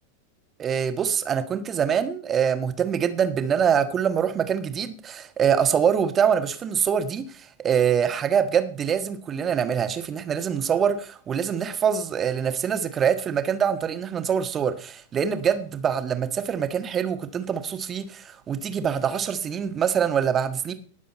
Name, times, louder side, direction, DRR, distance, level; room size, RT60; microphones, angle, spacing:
voice 1, 0.6-20.7, right 7 dB, 25° right, 1.5 m, -24 dB
18.5 x 7.3 x 4.4 m
figure-of-eight pair, 90°, 0 cm